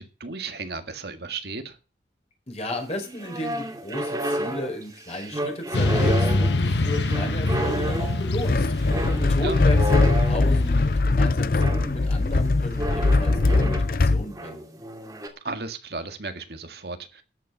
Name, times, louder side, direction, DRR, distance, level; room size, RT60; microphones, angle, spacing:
voice 1, 0.0-1.8 9.4-9.7 15.4-17.2, right 3 dB, 60° right, 1.8 m, -34 dB
voice 2, 2.5-14.6, left 1 dB, 35° left, 4.9 m, -34 dB
sound 1, 2.7-10.8 11.6-12.0 12.8-13.9 14.2-15.3, right 1 dB, 20° right, 2.5 m, -31 dB
Motorcycle / Traffic noise roadway noise, 5.7-11.0, left 2 dB, 75° left, 1.1 m, -25 dB
sound 2, 8.4-14.2, left 3 dB, 50° left, 0.6 m, -21 dB
13.5 x 9.1 x 5.7 m
head